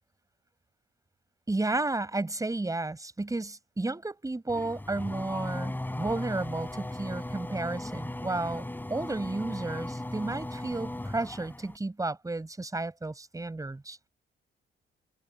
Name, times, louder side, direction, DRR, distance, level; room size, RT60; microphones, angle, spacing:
voice 1, 1.5-14.0, right 2 dB, 15° right, 5.6 m, -32 dB
Race car auto racing / Accelerating revving vroom, 4.5-11.8, left 1 dB, 10° left, 5.0 m, -37 dB
open air
cardioid pair, 90°, 20 cm